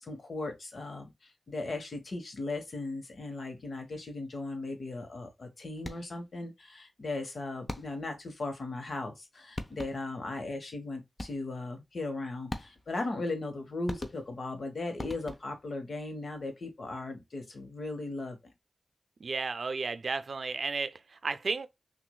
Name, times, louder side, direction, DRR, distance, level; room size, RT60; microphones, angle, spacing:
voice 1, 0.0-18.4, left 2 dB, 70° left, 1.2 m, -37 dB
sound 1, 5.8-6.3 7.7-8.2 9.2-9.3 9.6-10.2 11.2-11.6 12.5-13.0 13.9-14.5 15.0-15.7, left 2 dB, 35° left, 0.7 m, -41 dB
voice 2, 19.2-21.7, right 4 dB, 70° right, 0.4 m, -33 dB
6.0 x 2.6 x 2.3 m
cardioid pair, 45°, 0 cm